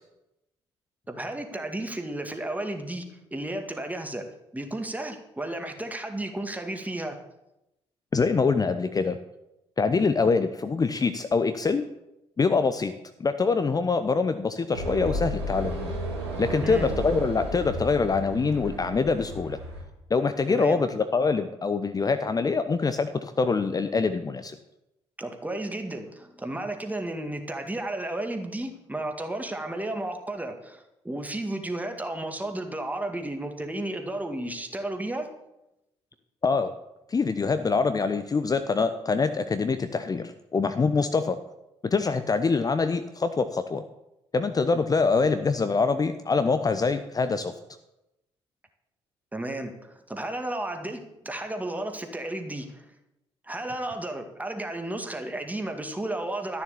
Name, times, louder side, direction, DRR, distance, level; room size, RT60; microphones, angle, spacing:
voice 1, 1.1-4.3 4.5-7.2 16.6-16.9 20.5-20.8 25.2-35.3 49.3-52.9 53.4-56.6, right 1 dB, 10° right, 5 dB, 2.0 m, -33 dB
voice 2, 8.1-9.2 9.8-11.9 12.4-12.9 13.2-15.9 16.4-19.6 20.1-24.6 36.4-36.7 37.1-41.4 41.8-43.8 44.3-47.5, left 4 dB, 30° left, 10 dB, 0.8 m, -24 dB
sound 1, 14.7-19.8, right 1 dB, 90° right, 2.7 m, -33 dB
12.5 x 7.0 x 7.0 m, 0.91 s
figure-of-eight pair, 45°, 13 cm